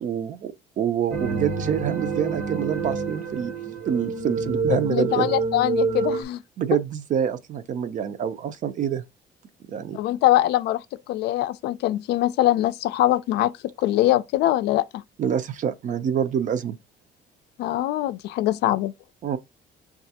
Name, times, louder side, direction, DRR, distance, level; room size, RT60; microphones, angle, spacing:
voice 1, 0.0-5.3 6.6-9.0 9.7-10.0 15.2-16.8 19.2-19.4, right 8 dB, 50° right, 0.5 m, -26 dB
sound 1, 1.1-6.2, right 4 dB, 75° right, 1.2 m, -27 dB
voice 2, 4.7-6.4 9.9-13.5 13.8-15.0 17.6-18.9, left 14 dB, 75° left, 0.4 m, -23 dB
5.6 x 2.4 x 2.8 m
cardioid pair, 110°, 17 cm